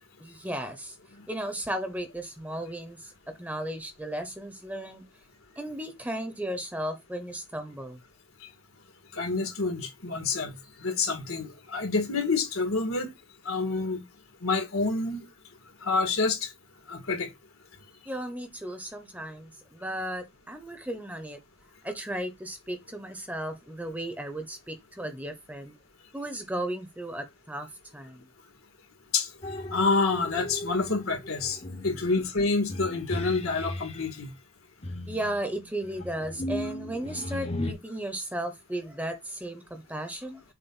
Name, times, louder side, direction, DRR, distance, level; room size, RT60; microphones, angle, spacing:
voice 1, 0.2-1.0 1.3-3.1 3.4-5.0 5.6-8.0 18.0-21.4 21.8-25.7 26.1-27.7 27.9-28.3 31.9-32.2 35.1-40.4, right 1 dB, 5° right, 0.8 m, -35 dB
voice 2, 9.1-10.5 10.8-13.1 13.5-14.0 14.4-15.2 15.8-16.5 16.9-17.3 29.1-29.3 29.7-31.6 31.8-34.3, left 3 dB, 85° left, 2.0 m, -27 dB
sound 1, 29.4-34.1 34.8-37.7, left 1 dB, 30° left, 0.7 m, -37 dB
7.0 x 2.5 x 5.5 m
head